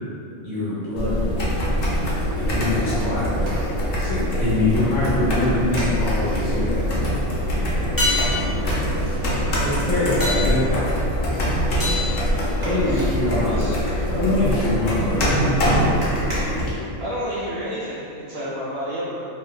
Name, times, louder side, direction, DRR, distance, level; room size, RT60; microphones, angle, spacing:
voice 1, 0.4-1.6 2.4-3.6 4.0-6.9 8.6-8.8 9.6-10.9 12.6-15.5, left 2 dB, 80° left, -11 dB, 1.0 m, -24 dB
sound 1, 1.0-16.7, equal, 60° left, 0.7 m, -23 dB
sound 2, 2.3-4.1 5.4-7.1 8.3-10.8 11.3-17.5 17.9-18.0, right 1 dB, 45° right, 0.8 m, -39 dB
sound 3, 8.0-13.1 17.6-17.7, left 2 dB, 30° left, 0.4 m, -29 dB
voice 2, 11.7-12.1 12.6-13.8 17.0-19.2, equal, 65° right, -9 dB, 1.2 m, -31 dB
3.3 x 2.0 x 2.2 m, 2.6 s
omnidirectional pair, 1.2 m